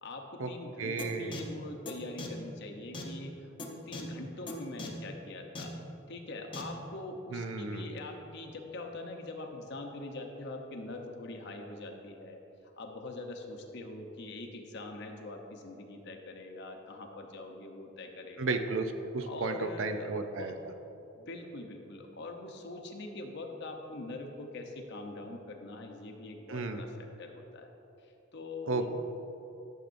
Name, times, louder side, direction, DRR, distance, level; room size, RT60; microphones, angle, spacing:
voice 1, 0.0-5.7 6.1-12.4 12.8-18.6 19.2-20.5 21.2-26.9 27.2-27.7 28.0-28.9, left 2 dB, 60° left, 3 dB, 0.8 m, -43 dB
voice 2, 0.8-1.4 7.3-7.9 18.4-20.5 26.5-26.8 28.6-28.9, right 3 dB, 70° right, 7 dB, 0.5 m, -33 dB
sound 1, 1.0-1.1 1.3-1.4 1.9-2.0 2.2-2.3 2.9-3.0 3.6-3.7 3.9-4.0 4.5-4.6 4.8-4.9 5.6-5.7 6.5-6.6, left 3 dB, 25° left, 0.8 m, -39 dB
12.0 x 6.6 x 2.6 m, 3.0 s
head